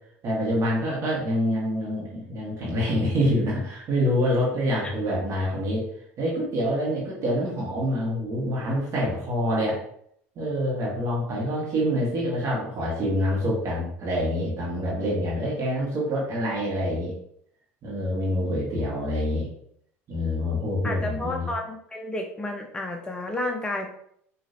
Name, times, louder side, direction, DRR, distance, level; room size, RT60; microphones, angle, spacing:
voice 1, 0.2-5.9 6.2-9.8 10.3-17.1 17.8-19.5 20.1-21.5, equal, 45° right, -4 dB, 1.6 m, -26 dB
voice 2, 20.8-23.9, left 1 dB, 10° left, 2 dB, 0.7 m, -31 dB
4.7 x 3.0 x 2.9 m, 0.68 s
hypercardioid pair, 75°, 7 cm